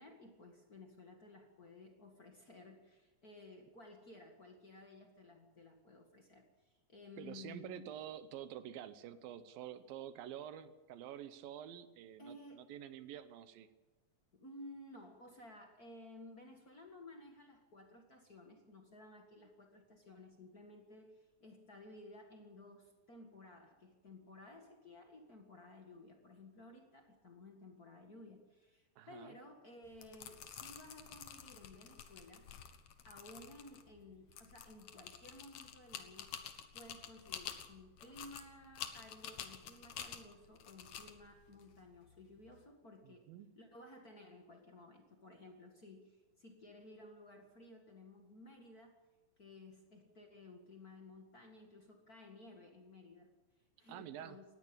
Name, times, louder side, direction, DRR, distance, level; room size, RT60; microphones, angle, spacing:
voice 1, 0.0-7.9 12.2-12.7 14.3-32.5 33.0-36.4 36.7-43.3 43.6-49.0 49.4-53.3 53.8-54.4, left 2 dB, 35° left, 3 dB, 1.8 m, -56 dB
voice 2, 7.2-13.7 29.0-29.3 43.0-43.5 53.9-54.4, right 11 dB, 90° right, 13 dB, 2.8 m, -48 dB
Pills in Bottle Open, 29.8-42.6, left 8 dB, 60° left, 2.5 m, -50 dB
19.0 x 15.5 x 8.8 m, 1.2 s
omnidirectional pair, 4.0 m